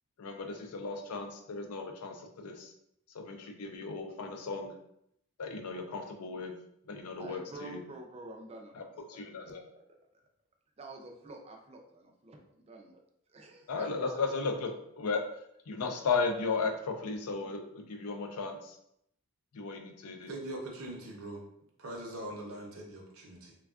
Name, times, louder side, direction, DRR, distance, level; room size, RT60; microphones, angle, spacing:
voice 1, 0.2-2.7 3.1-4.7 5.4-6.5 6.9-7.8 8.8-8.9 9.1-9.6 13.7-14.7 15.0-15.2 15.7-18.8 19.5-20.3, left 4 dB, 75° left, 0.4 m, -35 dB
voice 2, 7.2-9.5 9.8-10.2 10.8-13.0 13.3-13.9, right 2 dB, 25° right, 0.4 m, -49 dB
voice 3, 20.3-21.4 21.8-23.5, right 1 dB, 65° right, 0.7 m, -42 dB
3.3 x 2.3 x 2.3 m
head